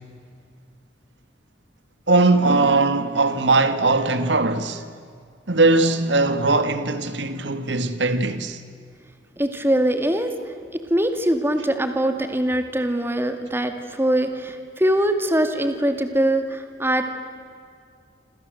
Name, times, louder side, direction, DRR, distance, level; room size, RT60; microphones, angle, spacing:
voice 1, 2.1-4.8 5.5-8.6, right 3 dB, 75° right, 1.8 m, -20 dB
voice 2, 9.4-10.3 10.7-17.0, right 1 dB, 15° right, 2.3 m, -22 dB
27.5 x 27.5 x 7.9 m
head